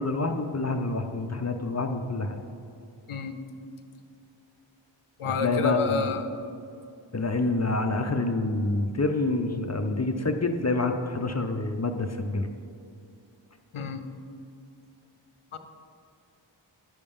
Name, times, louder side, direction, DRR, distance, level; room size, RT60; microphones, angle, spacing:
voice 1, 0.0-2.4 5.2-6.1 7.1-12.5, left 2 dB, 35° left, 6 dB, 0.6 m, -27 dB
voice 2, 5.2-6.2 13.7-14.0 15.5-15.6, left 5 dB, 85° left, 8 dB, 0.7 m, -29 dB
11.0 x 6.8 x 3.6 m, 2.5 s
wide cardioid pair, 45°, 49 cm